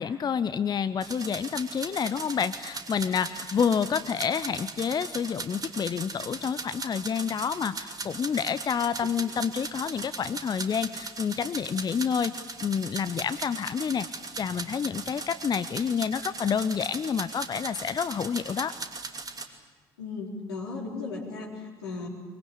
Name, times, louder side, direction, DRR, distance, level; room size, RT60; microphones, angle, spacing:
voice 1, 0.0-12.3 12.6-14.1 14.4-18.7, left 7 dB, 35° left, 14 dB, 0.7 m, -28 dB
sound 1, 1.0-19.5, right 4 dB, 30° right, 2.7 m, -39 dB
voice 2, 20.0-22.1, left 3 dB, 75° left, -1 dB, 4.0 m, -36 dB
24.0 x 23.0 x 8.4 m, 1.3 s
figure-of-eight pair, 50°, 13 cm